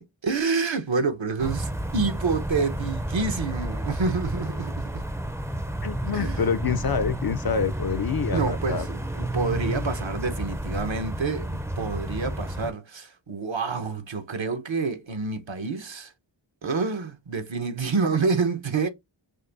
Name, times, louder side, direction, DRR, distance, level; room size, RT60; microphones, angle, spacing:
voice 1, 0.2-5.0 6.1-6.4 8.3-16.1 16.6-18.9, right 4 dB, 70° right, 0.9 m, -28 dB
sound 1, 1.4-12.7, right 1 dB, 5° right, 0.5 m, -31 dB
voice 2, 5.8-8.9, left 6 dB, 50° left, 0.5 m, -27 dB
6.2 x 2.6 x 2.5 m
wide cardioid pair, 45°, 47 cm